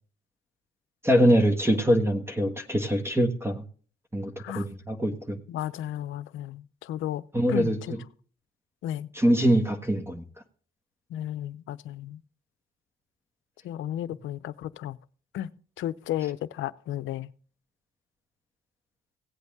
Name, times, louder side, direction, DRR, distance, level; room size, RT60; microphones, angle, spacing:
voice 1, 1.0-3.6 4.1-5.4 7.3-7.7 9.1-10.2, equal, 10° right, 1.5 m, -23 dB
voice 2, 5.5-7.9 8.8-9.1 11.1-12.2 13.6-15.0 15.3-15.5 15.8-17.3, left 12 dB, 80° left, 0.7 m, -34 dB
17.0 x 8.2 x 3.6 m
cardioid pair, 90°, 20 cm